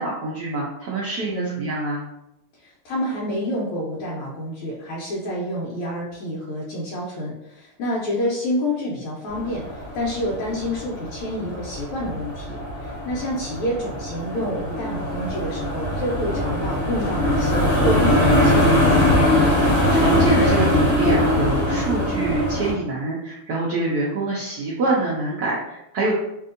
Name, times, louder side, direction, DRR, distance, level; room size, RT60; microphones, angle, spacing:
voice 1, 0.0-2.0 19.6-26.1, right 2 dB, 90° right, -5 dB, 0.8 m, -25 dB
voice 2, 1.3-1.6 2.6-19.2, equal, 80° left, -5 dB, 1.5 m, -28 dB
sound 1, 9.3-22.7, left 1 dB, 50° left, 0.7 m, -21 dB
3.4 x 2.7 x 2.5 m, 0.86 s
omnidirectional pair, 2.4 m